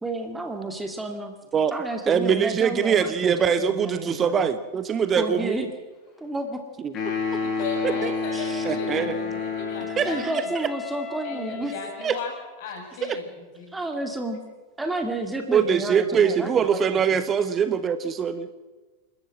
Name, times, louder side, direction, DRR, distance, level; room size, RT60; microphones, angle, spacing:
voice 1, 0.0-1.3 1.7-4.5 5.2-5.7 6.2-6.6 7.0-7.4 8.3-8.6 10.1-11.7 13.7-14.4 14.8-17.0, right 2 dB, 5° right, 4 dB, 2.3 m, -31 dB
voice 2, 2.1-5.6 6.8-6.9 7.8-8.1 8.6-9.1 10.0-10.7 12.0-12.2 13.1-13.2 15.5-18.5, right 7 dB, 25° right, 12 dB, 1.1 m, -23 dB
sound 1, 6.9-10.3, left 5 dB, 30° left, 7.5 m, -29 dB
voice 3, 7.4-10.5 11.2-13.7, left 4 dB, 50° left, 2 dB, 7.3 m, -36 dB
Wind instrument woodwind instrument, 8.6-12.8, left 8 dB, 15° left, 1.7 m, -41 dB
28.0 x 13.0 x 7.5 m, 1.3 s
figure-of-eight pair, 90°, 0 cm